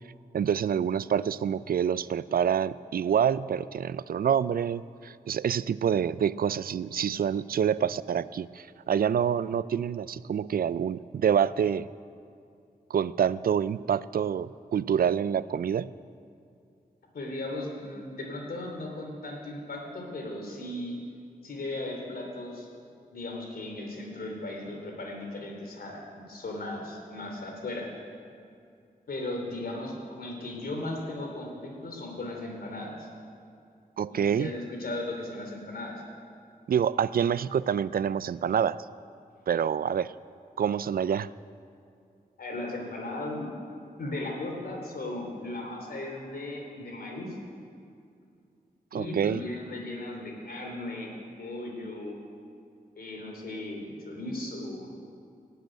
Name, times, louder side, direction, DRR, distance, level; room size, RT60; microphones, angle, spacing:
voice 1, 0.3-11.9 12.9-15.9 34.0-34.5 36.7-38.9 39.5-40.1 40.6-41.3 48.9-49.4, right 8 dB, 70° right, 17 dB, 0.4 m, -27 dB
voice 2, 17.1-21.0 21.4-22.7 23.1-27.9 29.1-33.1 34.1-36.0 42.4-43.5 44.0-47.3 48.9-51.1 51.4-52.2 52.9-54.9, left 2 dB, 75° left, 1 dB, 3.2 m, -37 dB
18.0 x 7.9 x 9.1 m, 2.5 s
wide cardioid pair, 130°, 16 cm